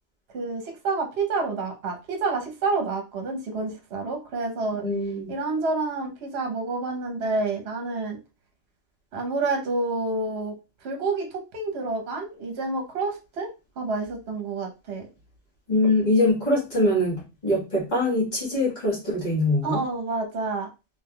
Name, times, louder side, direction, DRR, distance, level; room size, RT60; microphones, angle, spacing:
voice 1, 0.3-4.8 5.3-8.2 9.1-10.5 10.8-13.5 13.8-15.1 19.6-20.7, right 3 dB, 60° right, 3 dB, 1.0 m, -28 dB
voice 2, 4.8-5.3 15.7-19.8, left 1 dB, 35° left, -5 dB, 1.5 m, -23 dB
3.3 x 2.8 x 2.2 m, 0.28 s
omnidirectional pair, 1.2 m